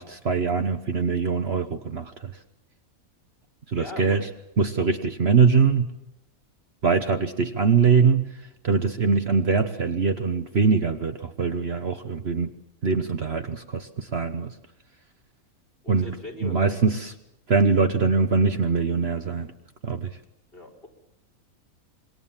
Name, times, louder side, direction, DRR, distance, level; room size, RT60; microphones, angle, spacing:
voice 1, 0.0-2.3 3.7-4.3 4.6-5.9 6.8-8.3 8.6-12.5 12.8-14.5 15.9-16.1 16.4-17.1 17.5-19.5 19.8-20.2, right 5 dB, 50° right, 7 dB, 1.2 m, -23 dB
voice 2, 3.7-4.2 4.8-4.9 15.8-16.8 20.5-20.9, left 2 dB, 40° left, 1 dB, 5.1 m, -39 dB
27.0 x 22.0 x 7.4 m, 0.88 s
omnidirectional pair, 1.5 m